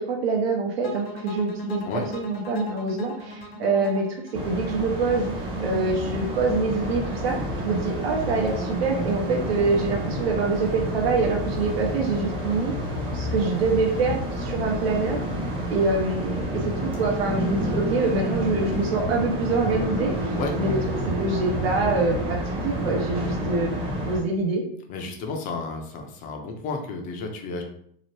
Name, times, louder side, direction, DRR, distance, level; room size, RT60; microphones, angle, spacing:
voice 1, 0.0-1.8 2.1-4.1 4.3-5.3 5.6-12.7 13.1-15.2 15.7-20.8 21.1-23.7 24.0-24.6, right 3 dB, 80° right, 0 dB, 0.8 m, -25 dB
sound 1, 0.8-5.9, left 1 dB, 80° left, 1.0 m, -38 dB
sound 2, 4.3-24.2, equal, 15° right, 0.7 m, -29 dB
voice 2, 24.9-27.6, left 3 dB, 25° left, 3 dB, 0.5 m, -32 dB
2.8 x 2.0 x 3.2 m, 0.66 s
hypercardioid pair, 130°, 30 cm